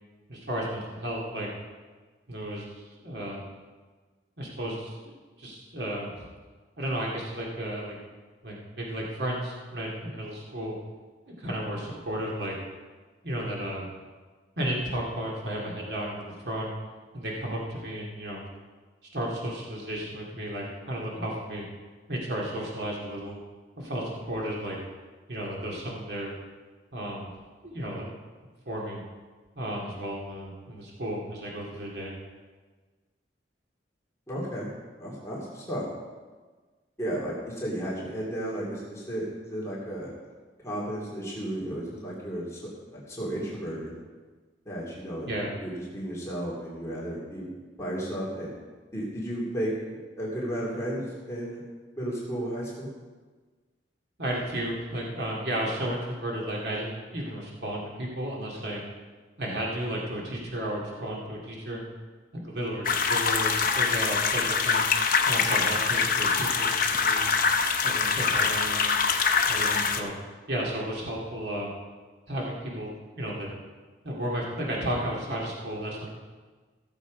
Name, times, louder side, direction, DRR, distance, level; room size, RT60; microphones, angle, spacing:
voice 1, 0.3-1.5 2.3-3.4 4.4-6.1 6.8-8.0 8.4-10.8 11.3-12.6 13.2-13.9 14.6-16.7 17.1-18.4 19.1-21.6 22.1-23.4 23.8-24.8 25.3-26.3 26.9-27.3 27.6-28.1 28.7-29.0 29.6-32.1 45.3-45.5 54.2-58.8 59.4-61.8 62.3-64.9 65.3-67.4 67.8-69.0 69.5-70.1 70.5-71.7 72.3-72.9 73.2-73.5 74.0-76.1, right 1 dB, 65° right, -3 dB, 2.4 m, -33 dB
voice 2, 34.3-34.7 35.0-35.9 37.0-40.1 40.6-42.6 42.9-43.9 44.7-47.5 47.8-48.5 48.9-49.7 50.2-51.0 51.3-51.6 52.0-52.9, right 1 dB, 15° left, -6 dB, 2.7 m, -33 dB
sound 1, 62.8-70.0, left 5 dB, 50° left, 0.9 m, -24 dB
16.0 x 7.3 x 5.1 m, 1.4 s
head